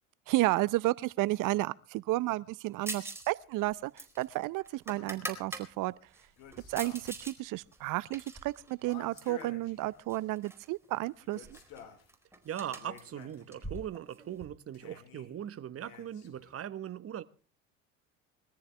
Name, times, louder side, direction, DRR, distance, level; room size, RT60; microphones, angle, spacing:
voice 1, 0.3-5.9 6.7-11.6, right 18 dB, 50° right, 0.7 m, -32 dB
sound 1, 2.9-3.3 3.6-5.7 6.1-7.4 7.7-9.4 10.1-10.7 10.9-11.0 11.3-14.4, right 2 dB, 5° right, 4.3 m, -43 dB
sound 2, 4.9-5.4 6.4-7.3 7.6-7.7 8.8-10.3 11.2-12.1 12.6-13.7 14.7-15.3 15.8-16.6, left 8 dB, 60° left, 4.7 m, -52 dB
voice 2, 12.4-17.2, right 10 dB, 35° right, 1.2 m, -40 dB
23.0 x 14.0 x 3.4 m
hypercardioid pair, 75°, 40 cm